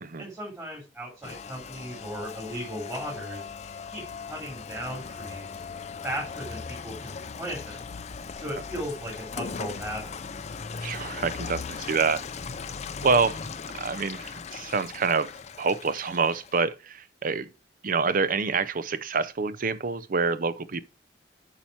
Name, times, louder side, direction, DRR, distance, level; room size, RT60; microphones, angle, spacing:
voice 1, 0.2-3.5 3.9-5.5 6.0-7.9 8.3-10.2, equal, 15° right, 3.3 m, -37 dB
Rain, 1.2-16.6, left 5 dB, 40° left, 0.5 m, -38 dB
voice 2, 10.8-12.2 13.0-13.4 13.7-15.3 15.6-17.5 17.8-20.8, right 4 dB, 50° right, 0.6 m, -26 dB
8.8 x 5.7 x 4.5 m
head